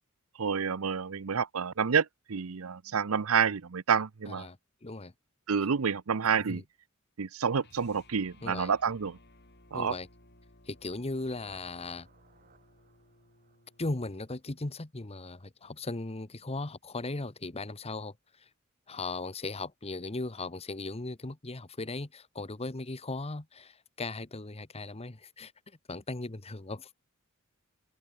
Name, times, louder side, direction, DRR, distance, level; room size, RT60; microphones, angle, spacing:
voice 1, 0.4-4.5 5.5-6.6 7.2-9.2 9.7-9.9, right 6 dB, 85° right, 0.7 m, -29 dB
voice 2, 4.8-5.1 6.5-6.6 8.4-8.7 9.7-10.1 10.7-12.1 13.8-18.1 18.9-25.5 25.9-26.9, left 2 dB, 30° left, 1.1 m, -37 dB
sound 1, 7.6-14.0, left 1 dB, 55° left, 4.9 m, -60 dB
sound 2, 10.7-14.7, right 4 dB, 45° right, 4.1 m, -62 dB
head